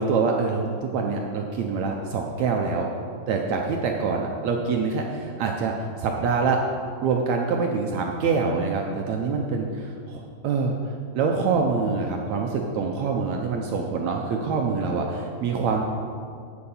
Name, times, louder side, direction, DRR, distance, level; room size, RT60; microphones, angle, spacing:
voice 1, 0.0-2.9 3.3-6.6 7.0-10.7 11.1-15.9, right 4 dB, 70° right, 1 dB, 1.8 m, -25 dB
8.8 x 8.6 x 7.1 m, 2.3 s
omnidirectional pair, 3.9 m